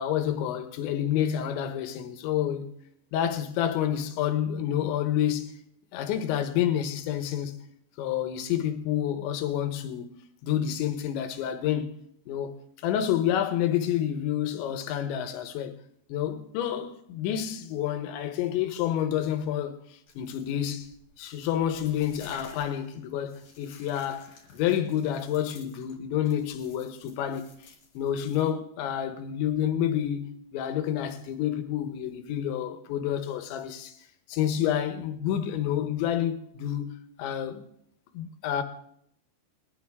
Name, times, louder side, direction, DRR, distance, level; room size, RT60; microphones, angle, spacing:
voice 1, 0.0-2.7 3.1-5.5 5.9-7.6 8.0-10.1 10.4-12.0 12.3-15.8 16.1-19.8 20.2-20.9 21.2-34.0 34.3-37.6 38.1-38.6, left 10 dB, 75° left, 3.2 m, -29 dB
sound 1, 20.1-28.5, left 4 dB, 45° left, 3.1 m, -54 dB
22.0 x 10.5 x 3.6 m
omnidirectional pair, 5.5 m